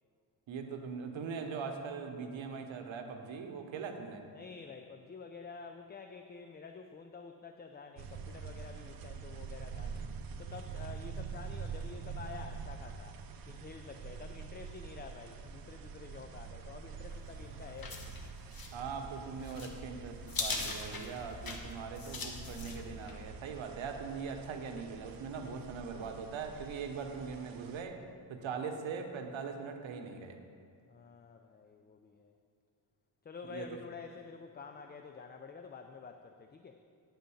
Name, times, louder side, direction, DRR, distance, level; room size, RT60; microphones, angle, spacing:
voice 1, 0.5-4.2 18.7-28.0 28.3-30.4 33.4-33.7, right 5 dB, 85° right, 5 dB, 0.9 m, -41 dB
voice 2, 4.3-10.1 10.4-18.1 30.9-32.4 33.2-36.8, left 5 dB, 25° left, 6 dB, 0.3 m, -49 dB
sound 1, 8.0-27.8, right 6 dB, 50° right, 0.6 m, -46 dB
sound 2, 17.1-23.3, left 3 dB, 50° left, 1.1 m, -42 dB
9.9 x 3.9 x 7.0 m, 2.3 s
cardioid pair, 85°, 45 cm